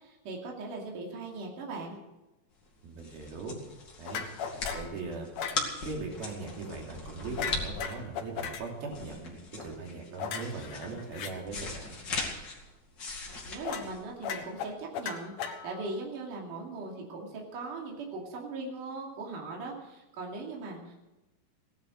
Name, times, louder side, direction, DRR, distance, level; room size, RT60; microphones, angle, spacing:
voice 1, 0.0-2.0 13.5-21.0, right 3 dB, 60° right, -1 dB, 4.0 m, -39 dB
sound 1, 2.7-14.6, left 3 dB, 35° left, 2.6 m, -39 dB
voice 2, 2.8-3.6 4.0-4.2 4.7-5.3 5.8-12.0, right 3 dB, 80° right, 0 dB, 4.6 m, -39 dB
sound 2, 4.1-4.9 5.4-5.6 7.4-8.6 10.2-11.3 13.6-13.9 14.2-15.9, left 7 dB, 90° left, 3.3 m, -36 dB
18.0 x 11.0 x 6.4 m, 0.99 s
omnidirectional pair, 4.2 m